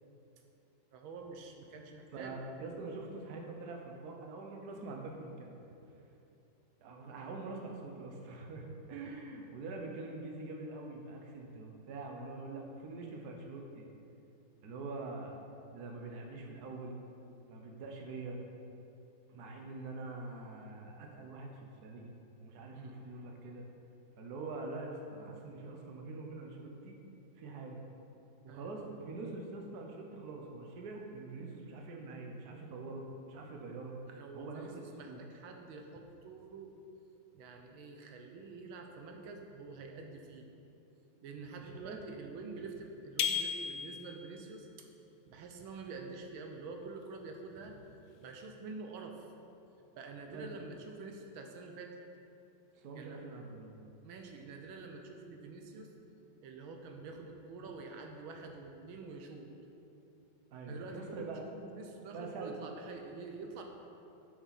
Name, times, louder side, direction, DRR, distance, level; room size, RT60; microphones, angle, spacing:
voice 1, 0.9-2.4 22.7-22.9 28.5-28.7 34.1-34.7 35.0-36.7 37.3-40.5 41.2-44.9 45.3-47.8 48.1-49.3 50.0-51.9 52.9-53.2 54.0-55.9 56.4-59.5 60.7-63.6, right 3 dB, 85° right, 3 dB, 1.7 m, -47 dB
voice 2, 2.1-5.6 6.0-6.1 6.8-13.9 14.6-15.3 15.7-16.9 17.5-18.4 19.3-22.1 22.4-23.6 24.2-27.0 27.4-27.8 28.4-34.0 34.3-35.2 41.6-42.0 50.3-50.5 52.8-53.8 60.5-61.4 62.1-62.6, right 3 dB, 60° right, 1 dB, 1.4 m, -44 dB
sound 1, 43.2-44.3, left 8 dB, 75° left, 1.3 m, -34 dB
11.0 x 6.4 x 4.2 m, 2.8 s
omnidirectional pair, 2.2 m